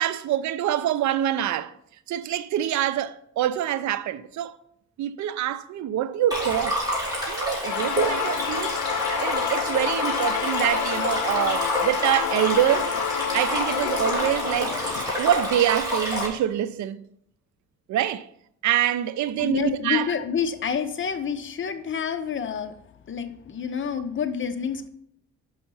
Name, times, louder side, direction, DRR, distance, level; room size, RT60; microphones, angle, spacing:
voice 1, 0.0-1.7 2.1-4.6 5.0-6.8 7.3-12.9 13.3-14.8 15.2-17.0 17.9-18.3 18.6-20.1, right 11 dB, 70° right, 0.6 m, -25 dB
Stream, 6.3-16.3, equal, 10° right, 3.2 m, -28 dB
sound 1, 7.7-15.1, left 13 dB, 85° left, 0.5 m, -29 dB
voice 2, 19.4-24.9, left 7 dB, 40° left, 0.8 m, -28 dB
5.6 x 5.5 x 5.5 m
cardioid pair, 90°, 30 cm